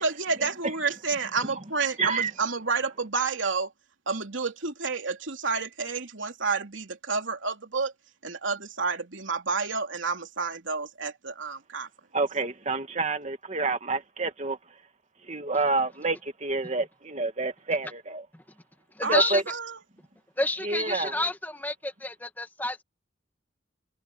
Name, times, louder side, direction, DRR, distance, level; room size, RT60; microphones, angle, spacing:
voice 1, 0.0-3.7 4.1-7.9 8.2-11.9 19.0-19.6, right 4 dB, 80° right, 3.0 m, -30 dB
voice 2, 2.0-2.3 12.1-14.6 15.3-18.3 19.1-19.4 20.6-21.1, right 3 dB, 35° right, 1.9 m, -28 dB
voice 3, 19.0-19.4 20.4-22.8, left 1 dB, 10° left, 1.9 m, -29 dB
head